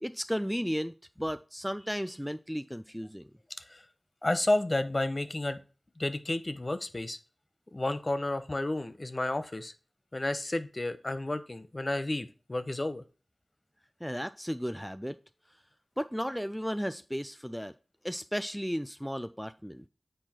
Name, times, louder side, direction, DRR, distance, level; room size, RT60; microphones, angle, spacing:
voice 1, 0.0-3.3 14.0-15.2 16.0-17.7 18.0-19.9, equal, ahead, 0.3 m, -34 dB
voice 2, 4.2-5.6 6.0-7.2 7.7-9.7 10.1-13.0, left 2 dB, 40° left, 0.8 m, -31 dB
7.9 x 4.5 x 4.3 m
wide cardioid pair, 55°, 0 cm